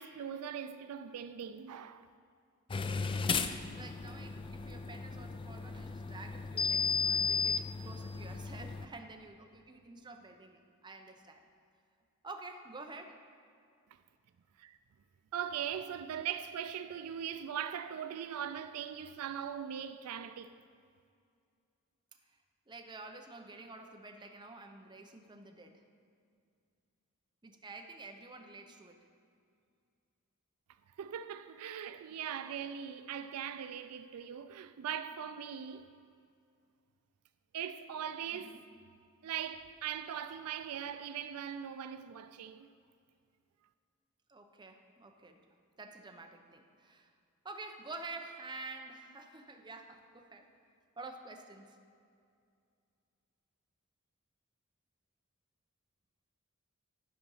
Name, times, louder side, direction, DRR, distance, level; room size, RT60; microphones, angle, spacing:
voice 1, 0.0-2.1 14.6-14.8 15.3-20.6 31.0-35.9 37.5-38.6 39.2-42.7, right 9 dB, 80° right, 0.4 m, -40 dB
sound 1, 2.7-8.8, left 5 dB, 25° left, 0.3 m, -35 dB
voice 2, 3.3-11.4 12.2-13.2 22.7-25.8 27.4-29.0 38.3-38.6 44.3-45.4 45.8-47.1 47.4-50.5 51.0-51.7, right 3 dB, 20° right, 0.7 m, -49 dB
12.0 x 5.2 x 5.5 m
head